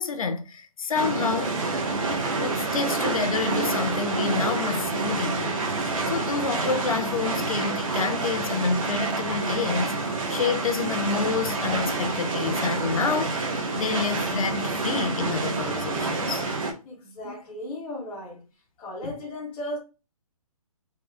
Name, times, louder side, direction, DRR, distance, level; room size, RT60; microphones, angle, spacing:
voice 1, 0.0-1.6 2.4-9.9 10.3-13.4 13.7-16.4 17.2-17.3, left 5 dB, 65° left, 0.6 m, -28 dB
sound 1, 0.9-16.7, right 3 dB, 60° right, 0.8 m, -28 dB
voice 2, 16.8-18.4 18.8-19.8, left 1 dB, 5° left, 0.4 m, -36 dB
3.7 x 2.1 x 3.1 m
hypercardioid pair, 165°, 19 cm